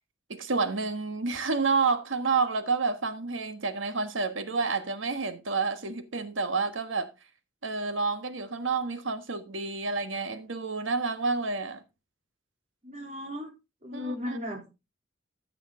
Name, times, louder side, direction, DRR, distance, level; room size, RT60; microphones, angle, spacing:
voice 1, 0.3-7.1 7.6-11.8 13.9-14.4, right 4 dB, 90° right, 1.4 m, -29 dB
voice 2, 12.8-13.5 13.8-14.7, left 1 dB, 35° right, 3.2 m, -36 dB
14.0 x 6.2 x 3.7 m
head